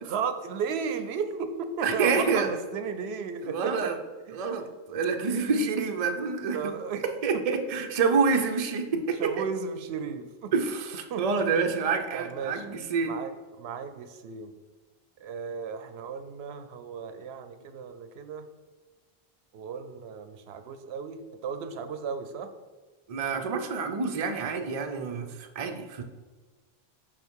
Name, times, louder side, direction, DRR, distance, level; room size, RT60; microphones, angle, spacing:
voice 1, 0.0-3.9 4.3-4.5 6.5-7.0 7.3-7.5 8.9-10.5 11.1-11.2 12.1-12.7 13.0-14.5 15.2-18.5 19.5-22.5, right 6 dB, 85° right, 9 dB, 0.9 m, -35 dB
voice 2, 1.8-2.5 3.5-3.9 4.4-6.7 7.2-9.5 10.5-13.1 23.1-26.0, right 5 dB, 45° right, 5 dB, 0.6 m, -27 dB
5.3 x 5.3 x 4.6 m, 1.3 s
omnidirectional pair, 1.0 m